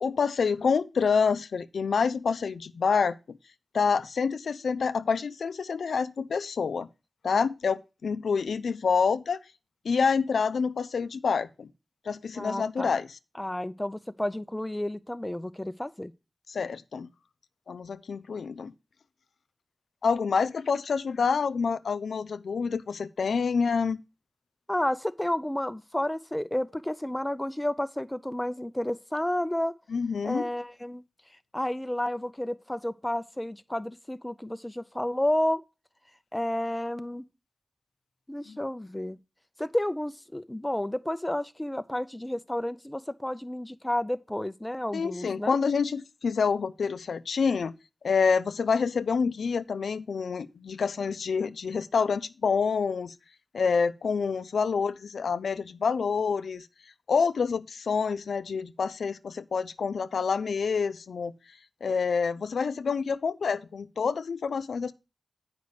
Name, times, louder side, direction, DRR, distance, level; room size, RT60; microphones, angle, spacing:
voice 1, 0.0-3.4 3.7-6.9 7.2-9.4 9.8-11.7 12.1-13.1 16.5-17.1 17.7-18.7 20.0-24.0 29.9-30.5 44.9-47.7 48.0-53.1 53.5-56.7 57.1-61.3 61.8-64.9, left 5 dB, 85° left, 0.4 m, -27 dB
voice 2, 12.4-12.9 13.4-16.1 24.7-29.7 30.2-31.0 31.5-35.6 36.3-37.2 38.3-39.2 39.6-45.6, left 1 dB, 15° left, 0.5 m, -31 dB
8.1 x 5.2 x 4.8 m
cardioid pair, 55°, 0 cm